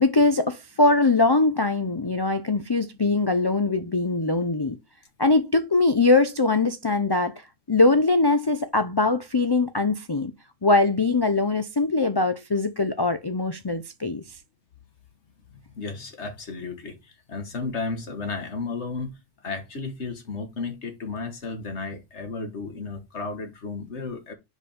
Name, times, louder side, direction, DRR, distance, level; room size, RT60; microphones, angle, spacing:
voice 1, 0.0-4.8 5.2-7.3 7.7-10.3 10.6-14.2, left 3 dB, 40° left, 0.3 m, -22 dB
voice 2, 15.5-24.3, left 4 dB, 65° left, 1.8 m, -33 dB
5.0 x 4.3 x 5.0 m
omnidirectional pair, 1.3 m